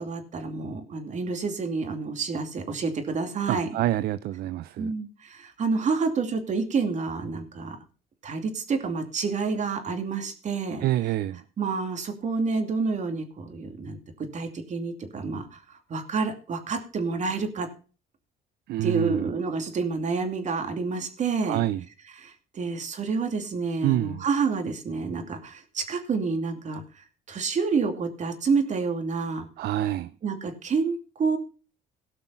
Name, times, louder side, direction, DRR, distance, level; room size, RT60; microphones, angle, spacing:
voice 1, 0.0-3.7 4.8-7.8 8.2-10.9 11.6-14.0 14.3-15.6 15.9-17.7 18.8-21.6 22.1-26.8 27.3-29.5 30.2-31.4, right 4 dB, 45° right, 2.6 m, -28 dB
voice 2, 3.5-4.9 10.8-11.4 18.7-19.3 21.4-21.8 23.8-24.2 29.6-30.1, right 14 dB, 70° right, 0.5 m, -27 dB
17.5 x 5.9 x 5.8 m
cardioid pair, 110°, 17 cm